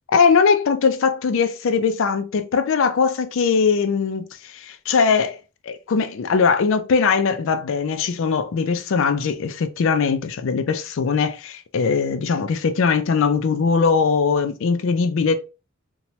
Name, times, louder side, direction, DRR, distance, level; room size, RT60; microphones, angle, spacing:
voice 1, 0.1-5.4 5.6-15.4, left 5 dB, 65° left, 0.4 m, -20 dB
3.0 x 2.2 x 2.7 m
head